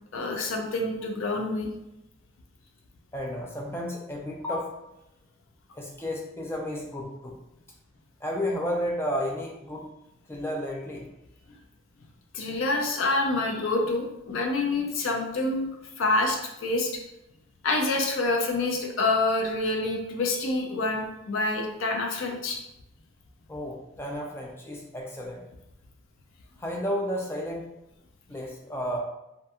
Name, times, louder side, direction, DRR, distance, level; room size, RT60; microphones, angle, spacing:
voice 1, 0.1-1.7 12.3-15.7 16.0-16.9 17.6-22.6, left 2 dB, 85° left, 2 dB, 0.4 m, -27 dB
voice 2, 3.1-4.7 5.7-7.3 8.2-9.9 10.3-11.0 12.7-12.8 23.5-25.4 26.6-27.7 28.3-29.0, equal, 10° left, -1 dB, 0.4 m, -32 dB
2.7 x 2.5 x 2.3 m, 0.88 s
head